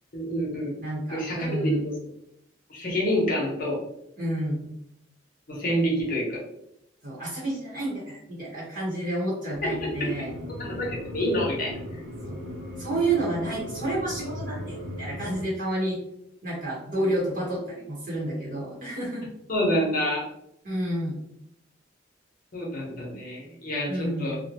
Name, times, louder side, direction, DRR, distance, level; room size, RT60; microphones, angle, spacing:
voice 1, 0.1-0.7 1.1-1.9 2.7-3.8 5.5-6.4 9.6-9.7 10.6-11.7 19.5-20.2 22.5-24.3, equal, 50° left, -3 dB, 0.8 m, -27 dB
voice 2, 0.8-1.8 4.2-4.7 7.0-10.3 12.2-12.4 12.8-16.0 16.4-19.3 20.6-21.2 23.9-24.4, right 1 dB, 50° right, -7 dB, 0.9 m, -30 dB
sound 1, 9.5-15.4, left 1 dB, 80° right, 1.1 m, -38 dB
2.4 x 2.2 x 2.8 m, 0.80 s
head